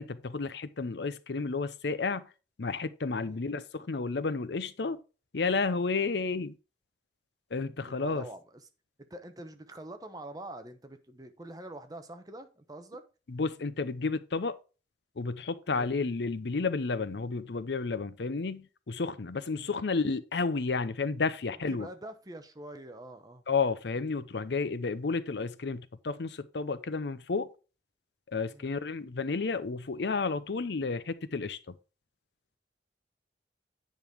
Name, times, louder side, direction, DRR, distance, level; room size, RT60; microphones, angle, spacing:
voice 1, 0.0-2.2 2.6-5.0 5.3-6.5 7.5-8.3 13.3-14.6 15.2-21.9 23.5-27.5 28.3-31.6, left 4 dB, 65° left, 0.6 m, -31 dB
voice 2, 7.7-8.6 9.1-13.0 15.7-15.9 19.5-19.7 21.7-23.4 28.5-28.7, right 1 dB, 20° right, 0.8 m, -45 dB
9.1 x 5.3 x 4.5 m
head